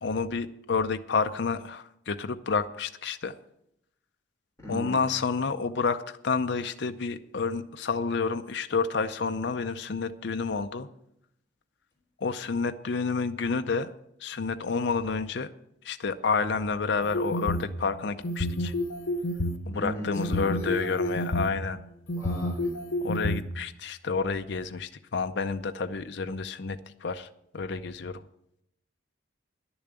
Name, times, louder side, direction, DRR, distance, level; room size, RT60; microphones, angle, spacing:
voice 1, 0.0-3.4 4.7-10.9 12.2-13.9 14.2-15.5 15.8-18.7 19.7-21.8 23.0-27.3 27.5-28.2, left 4 dB, 60° left, 8 dB, 0.5 m, -29 dB
voice 2, 4.6-5.0 19.7-21.2 22.2-22.8, equal, 15° left, -3 dB, 3.8 m, -37 dB
sound 1, 17.0-17.7 18.2-19.6 20.2-21.5 22.1-23.4, left 1 dB, 85° left, 0.9 m, -29 dB
10.5 x 7.1 x 9.0 m, 0.79 s
head